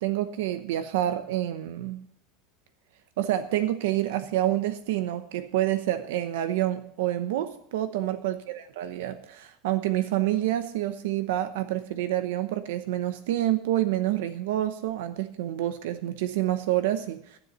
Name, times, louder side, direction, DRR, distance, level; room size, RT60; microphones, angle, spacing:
voice 1, 0.0-2.0 3.2-17.4, right 13 dB, 80° right, 10 dB, 0.9 m, -28 dB
12.5 x 10.0 x 5.5 m, 0.69 s
supercardioid pair, 180°, 0 cm